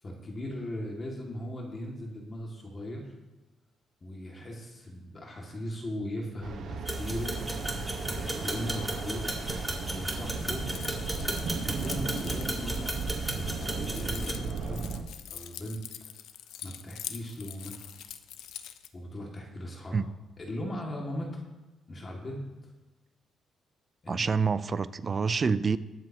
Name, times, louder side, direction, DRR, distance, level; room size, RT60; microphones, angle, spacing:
voice 1, 0.0-3.1 4.0-7.4 8.1-9.6 9.9-10.6 11.5-13.0 13.3-14.9 15.3-16.1 16.6-18.0 18.9-20.1 20.4-21.4 21.9-22.4 24.0-24.4, left 1 dB, 35° left, -1 dB, 2.3 m, -38 dB
sound 1, 6.4-15.0, right 4 dB, 65° right, 1.3 m, -35 dB
sound 2, 6.8-14.3, equal, 5° right, 2.2 m, -35 dB
Keys jangling, 10.7-18.9, left 10 dB, 85° left, 0.7 m, -44 dB
voice 2, 24.1-25.8, right 5 dB, 35° right, 14 dB, 0.5 m, -27 dB
21.5 x 7.7 x 3.0 m, 1.1 s
cardioid pair, 90°, 0 cm